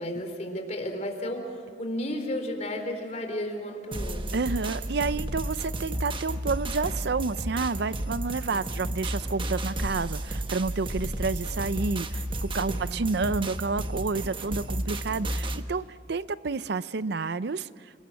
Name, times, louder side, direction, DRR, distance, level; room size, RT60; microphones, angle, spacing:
voice 1, 0.0-4.4 8.5-8.7 12.6-13.0 15.1-15.4, left 1 dB, 40° left, 4 dB, 4.1 m, -34 dB
sound 1, 3.9-15.6, right 1 dB, 30° right, 1.2 m, -32 dB
voice 2, 4.3-18.1, right 4 dB, 65° right, 15 dB, 0.6 m, -30 dB
29.5 x 20.5 x 7.7 m, 2.1 s
head